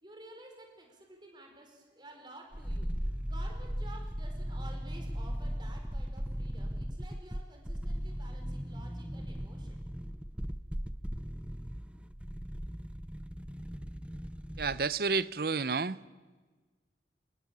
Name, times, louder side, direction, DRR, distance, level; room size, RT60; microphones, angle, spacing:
voice 1, 0.0-3.0 3.2-9.8, right 1 dB, 25° right, 4.8 m, -53 dB
sound 1, 2.5-14.9 15.2-15.3, equal, 5° right, 0.6 m, -38 dB
voice 2, 14.6-16.0, right 4 dB, 55° right, 0.7 m, -30 dB
26.0 x 21.0 x 7.5 m
head